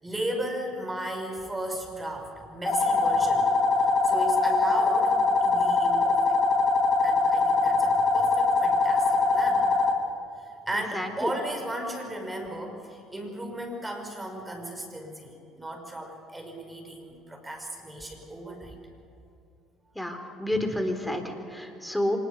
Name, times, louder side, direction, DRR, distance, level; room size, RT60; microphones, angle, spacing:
voice 1, 0.0-3.5 3.8-6.4 7.0-9.9 10.4-18.8 20.5-20.8, right 1 dB, 15° right, 3 dB, 5.4 m, -35 dB
sound 1, 2.6-9.9, left 3 dB, 30° left, 3.8 m, -23 dB
voice 2, 10.9-11.3 20.0-22.2, left 1 dB, 5° left, 5 dB, 4.0 m, -30 dB
25.0 x 20.5 x 6.7 m, 2.7 s
hypercardioid pair, 65°, 0 cm